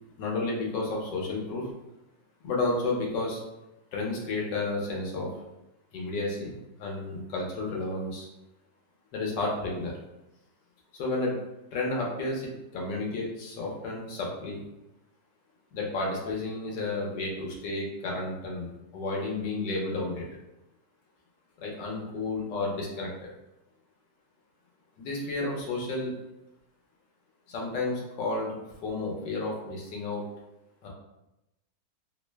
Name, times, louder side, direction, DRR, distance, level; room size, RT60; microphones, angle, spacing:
voice 1, 0.2-1.7 2.4-3.4 3.9-5.3 5.9-6.5 6.8-8.3 9.1-9.9 10.9-11.3 11.7-14.6 15.7-20.2 21.6-23.3 25.0-26.1 27.5-28.5 28.8-30.2 30.8-30.9, left 2 dB, 80° left, -2 dB, 1.5 m, -31 dB
3.6 x 2.1 x 3.2 m, 0.91 s
omnidirectional pair, 1.9 m